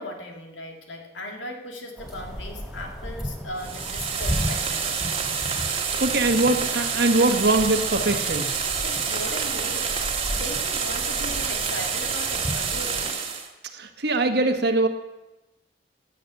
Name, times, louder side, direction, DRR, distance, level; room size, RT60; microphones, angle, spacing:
voice 1, 0.0-5.0 5.9-6.0 8.8-10.0 10.3-13.2, left 1 dB, 75° left, 2 dB, 2.5 m, -38 dB
sound 1, 2.0-13.1, equal, ahead, 3.3 m, -35 dB
sound 2, 3.6-13.5, right 6 dB, 30° right, 1.7 m, -28 dB
voice 2, 6.0-8.5 13.7-14.9, right 2 dB, 60° right, 6 dB, 1.5 m, -22 dB
13.5 x 9.4 x 8.2 m, 1.0 s
head